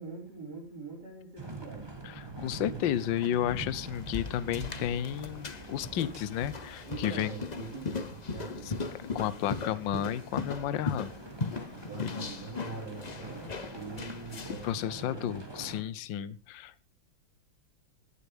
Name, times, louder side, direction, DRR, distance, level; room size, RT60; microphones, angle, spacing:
voice 1, 0.0-2.0 6.8-9.2 11.3-11.4 11.7-15.3, right 4 dB, 55° right, -5 dB, 6.4 m, -44 dB
sound 1, 1.4-15.8, right 2 dB, 10° right, 2.5 m, -45 dB
voice 2, 2.0-7.3 9.1-11.1 12.0-12.1 14.6-16.8, left 10 dB, 70° left, 17 dB, 1.5 m, -32 dB
sound 2, 3.8-14.7, left 4 dB, 45° left, 0.5 m, -38 dB
18.5 x 11.5 x 3.5 m, 0.29 s
omnidirectional pair, 2.1 m